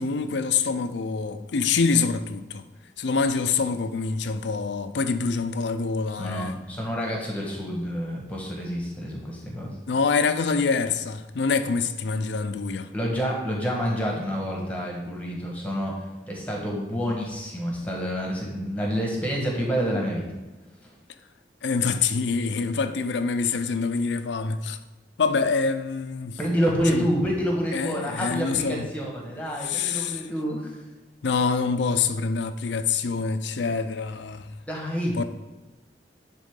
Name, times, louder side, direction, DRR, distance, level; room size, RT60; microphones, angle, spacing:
voice 1, 0.0-2.6 3.0-6.6 9.9-12.9 21.6-24.8 25.2-26.4 26.9-27.1 27.7-28.9 29.6-30.2 31.2-34.5 35.2-35.3, left 5 dB, 80° left, 0.5 m, -25 dB
voice 2, 6.2-9.7 12.9-20.2 20.8-20.9 26.4-30.8 34.6-35.2, equal, 10° left, 1.3 m, -28 dB
10.5 x 3.7 x 3.7 m
head